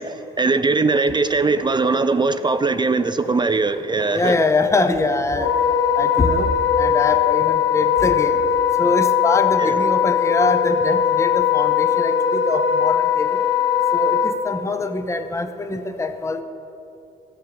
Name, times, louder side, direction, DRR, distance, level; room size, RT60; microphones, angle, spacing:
voice 1, 0.0-4.4 9.6-9.7, right 3 dB, 20° right, 11 dB, 0.4 m, -20 dB
voice 2, 4.1-5.5 6.0-6.5 6.8-8.4 8.8-13.3 13.9-16.4, left 3 dB, 15° left, 8 dB, 0.7 m, -23 dB
Wind instrument woodwind instrument, 5.3-14.3, left 8 dB, 65° left, 1.7 m, -19 dB
12.5 x 6.7 x 6.9 m, 2.9 s
cardioid pair, 90°, 20 cm